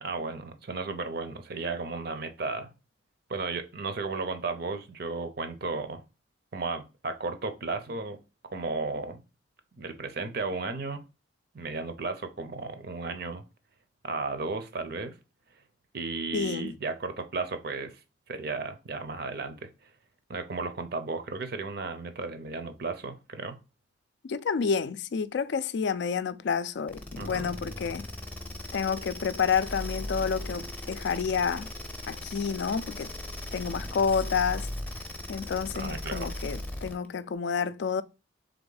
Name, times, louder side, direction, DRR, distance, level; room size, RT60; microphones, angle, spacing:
voice 1, 0.0-2.7 3.3-6.0 6.5-8.2 8.5-9.2 9.8-11.0 11.5-13.4 14.0-15.2 15.9-17.9 18.3-19.7 20.3-23.6 27.2-27.5 35.7-36.3, right 3 dB, 55° right, 0.6 m, -34 dB
voice 2, 16.3-16.7 24.2-28.1 28.7-31.7 32.1-33.1 33.5-34.7 35.3-38.0, left 6 dB, 60° left, 0.3 m, -29 dB
sound 1, 26.9-37.1, left 1 dB, 5° left, 0.6 m, -38 dB
3.5 x 3.4 x 3.8 m
head